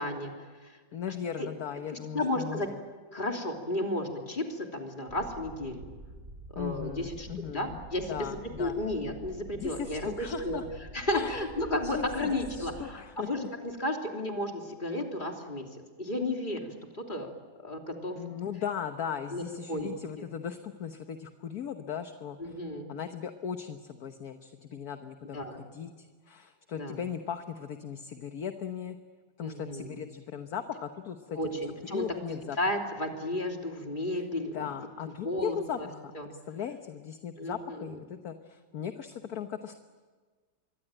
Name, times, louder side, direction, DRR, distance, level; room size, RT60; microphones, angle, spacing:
voice 1, 0.0-0.8 1.4-1.5 1.9-2.7 3.1-5.8 6.5-10.6 10.9-15.7 16.0-16.7 17.1-17.3 17.6-18.2 19.3-19.4 19.7-19.9 20.2-20.3 22.4-22.9 25.3-25.6 26.8-27.0 29.4-29.9 31.3-34.5 35.2-35.9 36.1-36.3 37.4-37.9, left 1 dB, 25° left, 2 dB, 3.3 m, -33 dB
voice 2, 0.9-2.8 6.5-7.8 8.1-8.8 9.5-10.6 11.1-11.4 11.8-13.3 18.1-22.6 22.9-29.0 29.4-31.4 31.9-32.6 34.1-34.2 34.5-39.7, left 8 dB, 55° left, 7 dB, 1.5 m, -38 dB
sound 1, 5.1-12.8, right 1 dB, 35° right, 5.3 m, -47 dB
27.0 x 23.0 x 9.0 m, 1.4 s
omnidirectional pair, 2.0 m